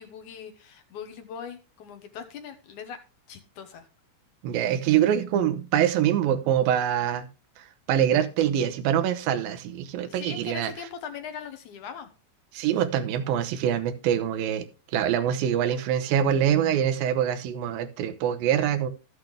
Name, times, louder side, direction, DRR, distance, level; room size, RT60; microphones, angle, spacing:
voice 1, 0.0-3.0 3.3-3.9 10.0-12.1, left 7 dB, 70° left, 2.4 m, -40 dB
voice 2, 4.4-7.3 7.9-10.7 12.5-14.7 14.9-18.9, right 10 dB, 85° right, 2.7 m, -24 dB
13.0 x 8.2 x 3.4 m
omnidirectional pair, 4.0 m